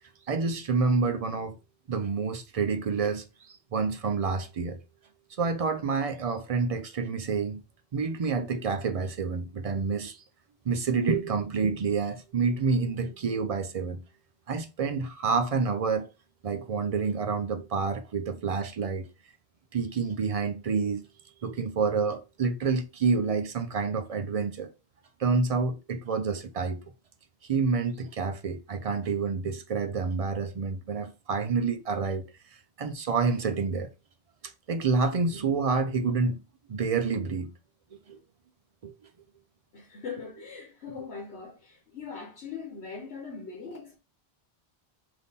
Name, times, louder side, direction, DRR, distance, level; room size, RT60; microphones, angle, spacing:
voice 1, 0.3-1.6 1.9-4.8 5.4-7.6 7.9-10.2 10.6-14.0 14.5-16.1 16.4-19.1 19.7-21.0 21.4-24.7 25.2-26.8 27.5-32.3 32.8-33.9 34.4-36.4 36.7-37.5 38.1-38.2 38.8-38.9, right 4 dB, 50° right, 0.4 m, -28 dB
voice 2, 39.7-44.0, left 5 dB, 85° left, 1.2 m, -41 dB
3.6 x 2.7 x 4.0 m
omnidirectional pair, 1.1 m